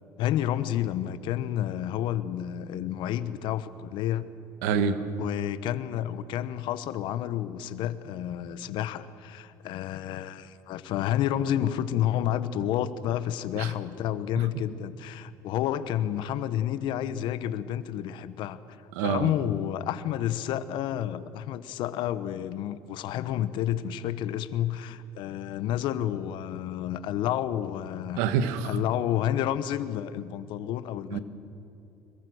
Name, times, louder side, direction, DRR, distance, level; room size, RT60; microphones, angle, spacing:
voice 1, 0.2-4.2 5.2-28.2 28.6-31.2, left 11 dB, 70° left, 13 dB, 1.2 m, -30 dB
voice 2, 4.6-5.0 13.6-13.7 18.9-19.3 28.2-28.8 31.1-31.2, right 6 dB, 90° right, 10 dB, 1.5 m, -26 dB
26.0 x 22.5 x 6.4 m, 2.7 s
supercardioid pair, 85°, 8 cm